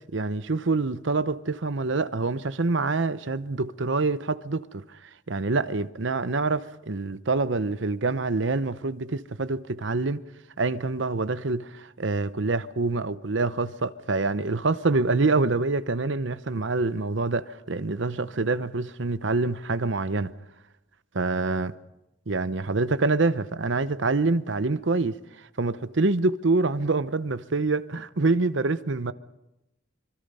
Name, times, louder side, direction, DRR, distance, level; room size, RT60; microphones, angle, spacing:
voice 1, 0.1-4.8 5.3-10.2 10.6-20.3 21.1-21.7 22.3-25.2 25.6-29.1, right 3 dB, 65° right, 0.8 m, -26 dB
25.5 x 23.5 x 5.5 m
head